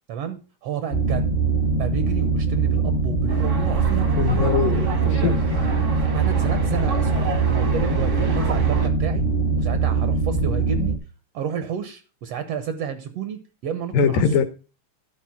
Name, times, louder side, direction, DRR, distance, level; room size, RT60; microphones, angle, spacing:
voice 1, 0.1-1.4 1.7-5.3 6.1-9.2 9.6-11.0 11.3-14.2, right 8 dB, 80° right, 1.4 m, -31 dB
sound 1, 0.9-11.0, right 4 dB, 50° left, 0.9 m, -22 dB
sound 2, 3.3-8.9, right 4 dB, 60° right, 0.7 m, -29 dB
voice 2, 4.2-4.9 5.2-5.4 13.9-14.5, left 6 dB, 90° left, 2.7 m, -20 dB
12.5 x 4.3 x 5.8 m
omnidirectional pair, 3.8 m